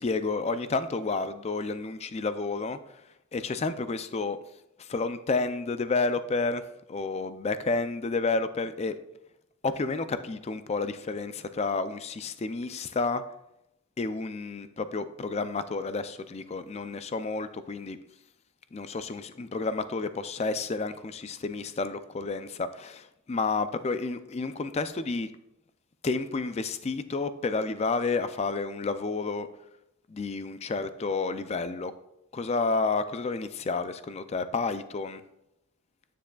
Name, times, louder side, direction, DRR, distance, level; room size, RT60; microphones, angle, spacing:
voice 1, 0.0-2.8 3.3-4.4 4.8-6.6 6.9-8.9 9.6-13.2 14.0-18.0 18.7-25.3 26.0-29.5 30.1-31.9 32.3-35.2, left 3 dB, 30° left, 12 dB, 0.3 m, -30 dB
9.2 x 7.3 x 2.3 m, 0.87 s
head